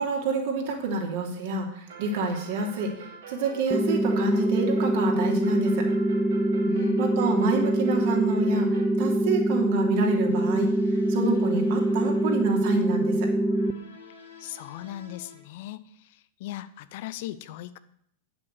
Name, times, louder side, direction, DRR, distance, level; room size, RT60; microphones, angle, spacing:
voice 1, 0.0-2.9 3.3-5.9 7.0-13.3, right 3 dB, 50° right, 1 dB, 3.0 m, -28 dB
sound 1, 1.9-9.0, right 4 dB, 65° right, 4.6 m, -45 dB
sound 2, 3.7-13.7, right 1 dB, 5° left, 0.8 m, -24 dB
voice 2, 6.7-7.0 14.4-15.8 16.4-17.8, left 14 dB, 50° left, 14 dB, 0.7 m, -37 dB
sound 3, 10.3-15.4, left 4 dB, 70° left, 2.7 m, -49 dB
9.5 x 7.9 x 8.2 m, 0.70 s
figure-of-eight pair, 90°, 0 cm